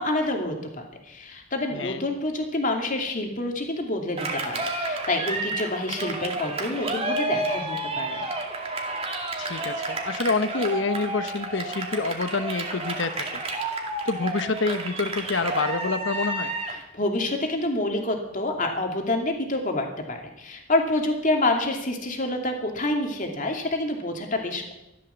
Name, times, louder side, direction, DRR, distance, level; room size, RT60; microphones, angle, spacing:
voice 1, 0.0-8.2 16.9-24.7, left 2 dB, 40° left, 2 dB, 2.7 m, -27 dB
Cheering, 4.2-16.8, right 2 dB, 30° right, 2.3 m, -30 dB
voice 2, 9.4-13.4 14.0-16.5, left 3 dB, 65° left, 11 dB, 1.0 m, -27 dB
14.0 x 12.0 x 7.0 m, 0.89 s
head